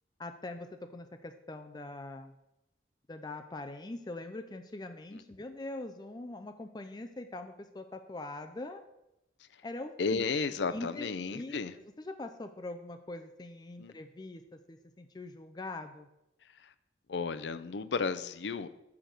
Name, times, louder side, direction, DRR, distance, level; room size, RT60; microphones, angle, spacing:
voice 1, 0.2-0.7 0.9-2.3 3.1-8.8 9.6-10.2 10.7-11.6 12.0-16.1, left 2 dB, 20° left, 7 dB, 0.4 m, -42 dB
voice 2, 10.0-11.7 13.8-13.9 17.1-18.7, left 4 dB, 70° left, 12 dB, 0.5 m, -33 dB
7.0 x 5.9 x 6.4 m, 0.89 s
head